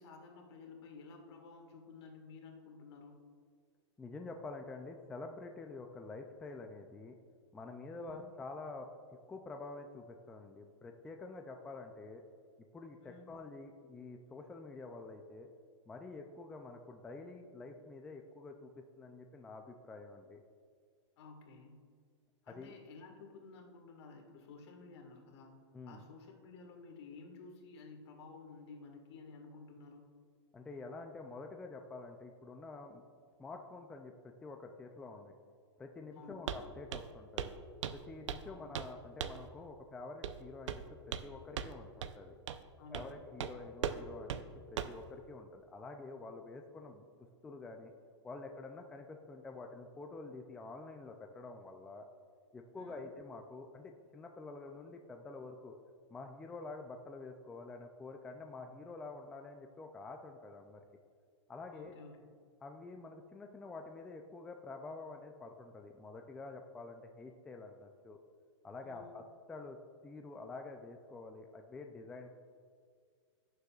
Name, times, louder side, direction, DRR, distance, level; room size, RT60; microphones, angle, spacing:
voice 1, 0.0-3.2 7.9-8.3 13.0-13.3 21.2-21.8 22.4-25.6 25.9-30.0 36.2-36.4 38.5-38.7 42.8-43.2 52.8-53.1 61.7-62.3 68.8-69.2, left 4 dB, 60° left, 2 dB, 1.8 m, -53 dB
voice 2, 4.0-7.2 7.5-8.9 9.3-12.2 12.7-15.5 15.9-20.4 22.5-22.7 25.7-26.1 30.5-33.0 33.4-35.3 35.8-37.5 37.9-42.4 42.9-47.0 47.4-47.9 48.2-52.1 52.5-55.8 56.1-60.8 61.5-61.9 62.6-68.2 68.6-69.8 70.0-72.3, left 3 dB, 5° left, 3 dB, 0.3 m, -48 dB
Walk footsteps, 36.5-36.6 36.9-37.1 37.4-37.6 37.8-38.5 38.7-38.9 39.2-39.5 40.2-40.4 40.7-41.3 41.6-41.7 42.0-42.1 42.5-42.6 42.9-43.1 43.4-43.5 43.8-44.0 44.3-44.4 44.8-45.0, right 8 dB, 80° right, 0.6 m, -38 dB
17.5 x 6.7 x 2.4 m, 2.1 s
supercardioid pair, 155°, 15 cm